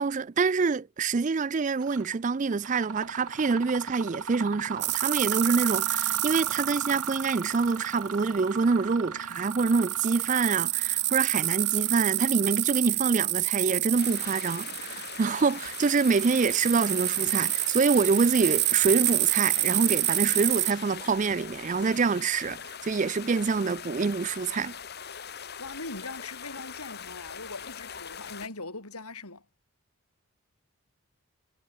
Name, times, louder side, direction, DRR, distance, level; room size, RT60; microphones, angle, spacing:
voice 1, 0.0-24.7, right 4 dB, 35° right, 0.4 m, -26 dB
Mechanisms, 1.8-2.1 2.5-13.1, right 5 dB, 85° right, 2.7 m, -38 dB
sound 1, 4.8-8.2 9.3-20.7, right 17 dB, 50° right, 1.4 m, -28 dB
sound 2, 14.0-28.5, left 7 dB, 45° left, 1.6 m, -41 dB
voice 2, 25.2-29.4, left 3 dB, 90° left, 6.2 m, -41 dB
head